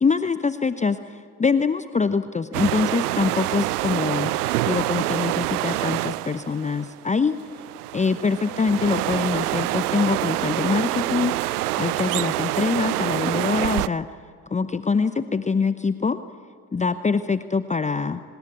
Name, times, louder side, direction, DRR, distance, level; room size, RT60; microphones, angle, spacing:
voice 1, 0.0-4.3 4.6-7.4 7.9-11.3 11.8-14.1 14.5-16.2 16.7-18.2, left 5 dB, 15° left, 12 dB, 0.8 m, -24 dB
sound 1, 2.5-13.9, right 17 dB, 80° right, 0.6 m, -26 dB
25.0 x 20.0 x 8.4 m, 2.3 s
figure-of-eight pair, 60°, 45 cm